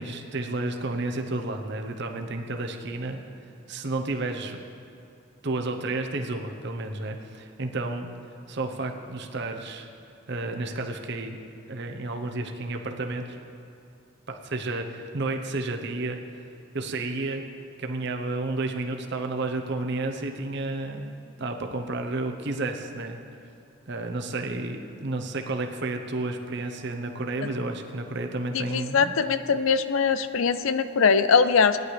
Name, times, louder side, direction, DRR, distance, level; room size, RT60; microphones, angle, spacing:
voice 1, 0.0-3.2 3.7-4.6 5.4-8.1 8.5-9.9 10.3-11.4 11.7-13.4 14.3-16.2 16.7-17.4 17.8-21.1 21.4-23.2 23.9-29.1, right 2 dB, 55° right, 4 dB, 0.9 m, -31 dB
voice 2, 28.5-31.8, left 5 dB, 70° left, 12 dB, 0.5 m, -22 dB
17.5 x 10.5 x 3.3 m, 2.5 s
head